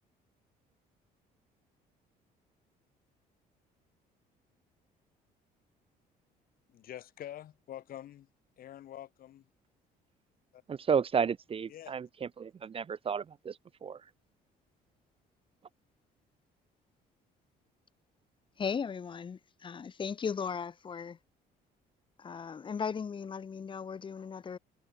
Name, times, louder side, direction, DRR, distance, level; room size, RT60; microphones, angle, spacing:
voice 1, 6.7-8.3 8.6-9.5 10.5-10.6 11.7-11.9, left 12 dB, 60° left, 1.7 m, -46 dB
voice 2, 10.7-14.0, right 6 dB, 35° right, 1.0 m, -32 dB
voice 3, 18.6-21.2 22.2-24.6, left 6 dB, 30° left, 1.0 m, -37 dB
cardioid pair, 110°, 17 cm